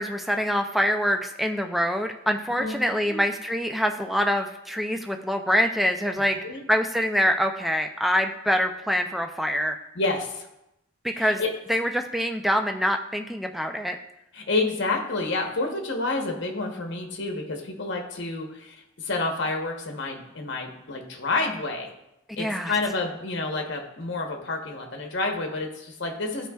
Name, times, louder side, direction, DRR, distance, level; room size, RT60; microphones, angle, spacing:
voice 1, 0.0-6.4 6.7-9.8 11.0-11.4 11.7-14.0 22.4-22.7, equal, ahead, 5 dB, 0.3 m, -25 dB
voice 2, 2.6-3.2 6.2-6.6 9.9-10.5 11.1-11.5 14.3-21.9 22.4-26.5, left 3 dB, 55° left, 2 dB, 0.9 m, -29 dB
13.0 x 4.4 x 2.3 m, 0.87 s
head